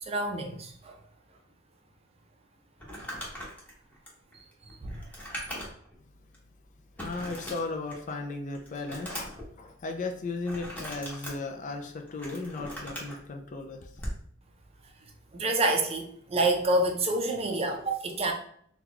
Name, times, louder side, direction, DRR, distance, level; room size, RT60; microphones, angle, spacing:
voice 1, 0.0-1.0 4.7-5.0 15.3-18.3, right 2 dB, 30° right, 3 dB, 0.5 m, -28 dB
Crumpling crinkling, 2.8-5.9 6.3-6.4 7.0-8.1 8.5-9.5 10.4-11.3 11.9-13.2 13.9-14.2, equal, 10° left, 0.9 m, -39 dB
voice 2, 7.0-14.0, left 3 dB, 40° left, 5 dB, 0.4 m, -36 dB
2.9 x 2.3 x 3.8 m, 0.62 s
head